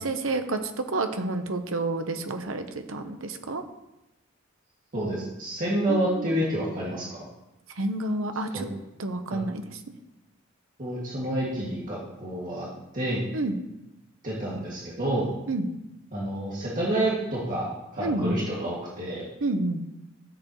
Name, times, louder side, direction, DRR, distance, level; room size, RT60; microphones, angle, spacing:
voice 1, 0.0-3.6 5.9-6.3 7.8-8.6 9.0-9.6 13.3-13.6 15.5-15.7 18.0-18.4 19.4-19.8, right 2 dB, 75° right, 7 dB, 1.0 m, -29 dB
voice 2, 4.9-7.2 8.5-8.6 9.3-9.4 10.8-12.7 12.9-13.2 14.2-15.3 16.1-19.2, right 1 dB, 40° right, -7 dB, 2.3 m, -29 dB
14.0 x 7.9 x 3.1 m, 0.93 s
head